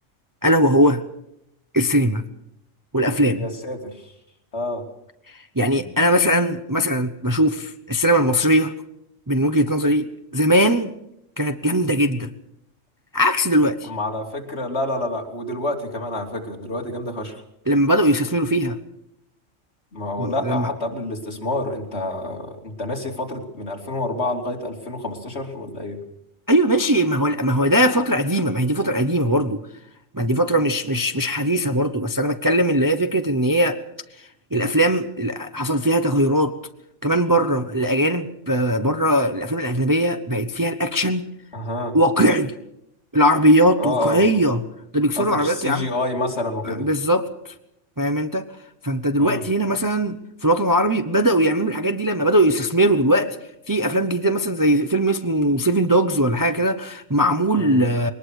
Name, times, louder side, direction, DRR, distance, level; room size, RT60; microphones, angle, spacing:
voice 1, 0.4-1.0 1.7-2.3 2.9-3.5 5.3-8.7 9.3-10.9 11.4-12.3 13.1-13.9 17.7-18.8 20.2-20.7 26.5-29.6 30.1-33.8 34.2-36.5 37.0-41.3 41.9-42.5 43.1-44.6 44.9-45.9 46.6-47.5 48.0-48.5 48.8-53.4 53.7-58.1, equal, 20° right, 8 dB, 0.8 m, -20 dB
voice 2, 3.4-4.1 4.5-4.8 13.8-17.4 19.9-26.0 41.5-42.0 43.8-44.4 45.2-46.9 49.2-49.4 57.5-57.8, left 1 dB, 55° left, 2 dB, 3.3 m, -28 dB
22.0 x 19.5 x 6.4 m, 0.78 s
omnidirectional pair, 1.3 m